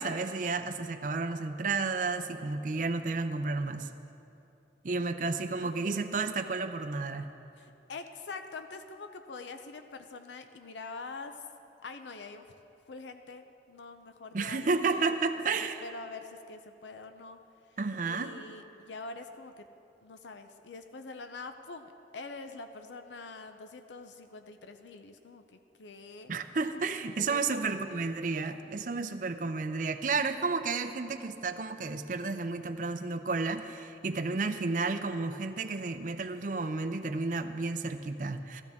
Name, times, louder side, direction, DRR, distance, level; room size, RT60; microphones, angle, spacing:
voice 1, 0.0-3.9 4.8-7.3 14.3-15.8 17.8-18.3 26.3-38.6, right 4 dB, 45° right, 7 dB, 0.5 m, -32 dB
voice 2, 5.6-6.2 7.6-11.5 11.8-12.5 12.9-15.1 15.5-17.4 17.7-17.8 18.0-19.7 20.0-26.3 27.3-28.1 34.3-34.9, left 3 dB, 85° left, 7 dB, 0.6 m, -45 dB
14.5 x 14.0 x 3.6 m, 2.8 s
head